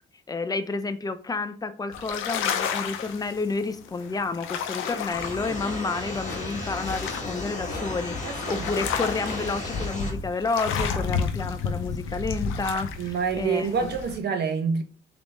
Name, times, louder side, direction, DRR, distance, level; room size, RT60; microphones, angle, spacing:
voice 1, 0.3-13.9, left 3 dB, 20° left, 0.5 m, -30 dB
sound 1, 1.9-14.2, left 6 dB, 90° left, 0.6 m, -32 dB
sound 2, 4.8-5.2 6.2-6.7 7.6-8.1 9.2-9.7, left 3 dB, 50° left, 1.6 m, -40 dB
sound 3, 5.1-10.1, left 2 dB, 35° left, 1.7 m, -34 dB
voice 2, 8.2-8.7 13.0-14.8, right 5 dB, 55° right, 0.9 m, -27 dB
3.9 x 3.5 x 3.4 m
cardioid pair, 90°, 20 cm